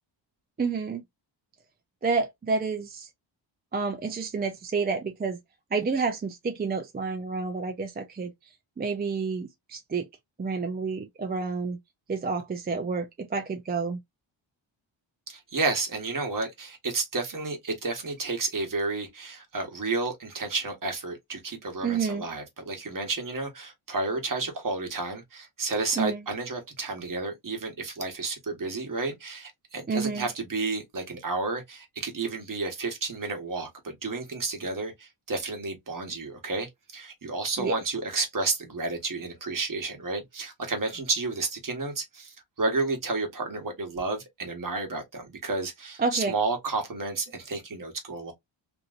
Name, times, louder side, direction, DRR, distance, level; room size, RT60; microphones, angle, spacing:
voice 1, 0.6-1.0 2.0-3.1 3.7-5.4 5.7-8.3 8.8-10.1 10.4-11.8 12.1-14.0 21.8-22.3 26.0-26.2 29.9-30.3 37.6-37.8 46.0-46.3, right 4 dB, 20° right, 0.4 m, -29 dB
voice 2, 15.3-48.3, right 3 dB, 45° right, 1.1 m, -31 dB
2.9 x 2.6 x 2.4 m
wide cardioid pair, 125°, 46 cm